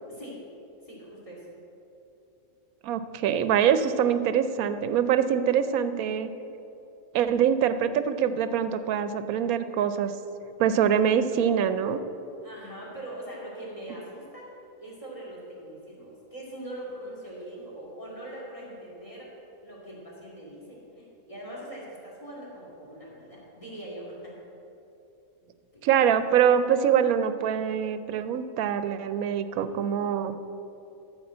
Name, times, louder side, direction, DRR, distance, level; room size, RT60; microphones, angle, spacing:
voice 1, 0.1-0.4 0.8-1.5 12.4-14.4 14.8-19.4 19.6-24.3 25.4-26.1, right 1 dB, 25° left, -5 dB, 2.6 m, -42 dB
voice 2, 2.8-6.3 7.1-10.1 10.6-12.0 25.8-30.4, right 8 dB, 85° right, 11 dB, 1.1 m, -24 dB
13.0 x 4.6 x 7.7 m, 2.9 s
omnidirectional pair, 1.5 m